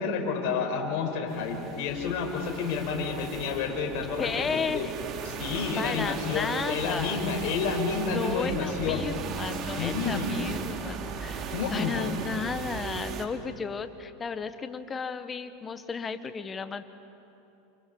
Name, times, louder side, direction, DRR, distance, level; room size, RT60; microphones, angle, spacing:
voice 1, 0.0-4.9 5.2-9.0 9.8-10.4 11.5-12.2, left 5 dB, 55° left, 1 dB, 5.1 m, -30 dB
sound 1, 1.3-13.3, right 6 dB, 40° right, 2.6 m, -37 dB
voice 2, 4.2-4.9 5.7-7.4 7.9-16.8, left 5 dB, 25° left, 10 dB, 1.5 m, -34 dB
28.5 x 27.5 x 5.5 m, 2.8 s
hypercardioid pair, 85°, 0 cm